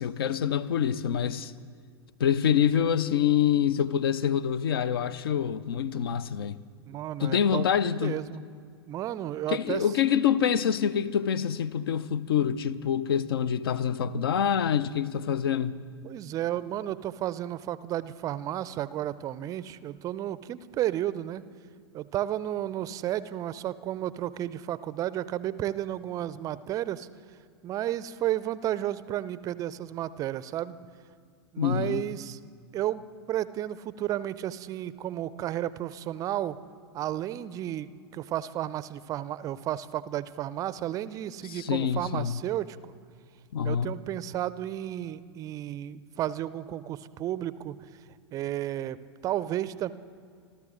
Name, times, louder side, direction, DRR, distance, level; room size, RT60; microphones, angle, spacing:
voice 1, 0.0-1.5 2.2-6.6 7.2-8.2 9.5-15.8 31.6-32.0 41.5-42.4 43.5-43.9, left 8 dB, 60° left, 0.6 m, -26 dB
voice 2, 6.9-8.4 8.8-9.8 16.0-21.4 21.9-27.1 27.6-30.8 31.5-32.4 32.7-36.6 36.9-42.9 43.6-47.8 48.3-49.9, right 12 dB, 25° right, 0.5 m, -32 dB
27.0 x 13.0 x 3.7 m
figure-of-eight pair, 95°, 14 cm